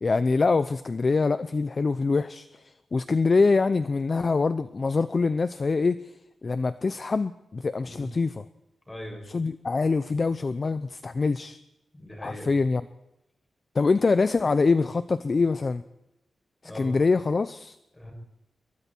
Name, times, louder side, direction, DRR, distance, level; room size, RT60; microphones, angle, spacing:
voice 1, 0.0-6.1 6.4-8.4 9.3-11.6 12.2-12.8 13.7-15.8 16.7-17.8, left 4 dB, 30° left, 13 dB, 0.7 m, -24 dB
voice 2, 8.9-9.3 11.9-12.5 16.6-17.0 17.9-18.1, left 1 dB, 10° left, 1 dB, 7.5 m, -40 dB
27.5 x 23.5 x 4.6 m, 0.87 s
wide cardioid pair, 165°, 0 cm